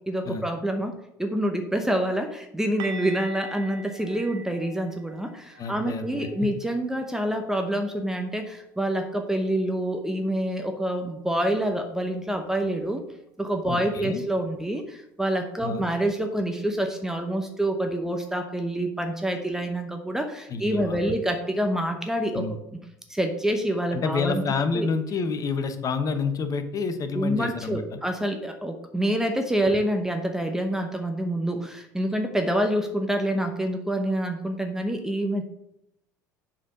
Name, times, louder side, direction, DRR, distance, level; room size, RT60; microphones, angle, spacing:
voice 1, 0.1-13.0 13.4-22.4 23.1-24.4 24.7-24.9 27.1-35.5, right 1 dB, 5° right, 4 dB, 0.9 m, -27 dB
sound 1, 2.8-8.6 8.8-9.1 9.4-9.6 12.8-12.9, right 4 dB, 50° right, 1.0 m, -44 dB
voice 2, 5.6-6.3 13.7-14.2 15.6-15.8 20.5-21.0 22.3-22.6 23.9-28.0 29.7-29.8, left 4 dB, 35° left, 9 dB, 1.0 m, -28 dB
7.4 x 4.3 x 5.3 m, 0.82 s
figure-of-eight pair, 65°, 10 cm